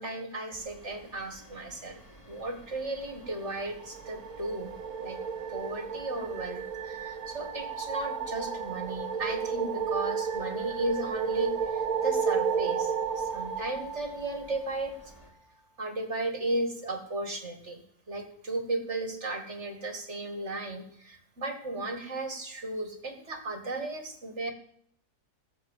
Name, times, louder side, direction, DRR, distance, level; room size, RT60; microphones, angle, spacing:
voice 1, 0.0-2.0 2.3-4.7 5.0-5.2 5.5-14.9 15.8-17.8 18.1-24.5, right 2 dB, 45° right, 6 dB, 2.3 m, -35 dB
sound 1, 0.6-15.3, right 1 dB, 10° left, 3.3 m, -54 dB
sound 2, 3.6-15.0, right 6 dB, 70° right, 1.6 m, -33 dB
15.0 x 7.7 x 7.3 m, 0.65 s
omnidirectional pair, 1.6 m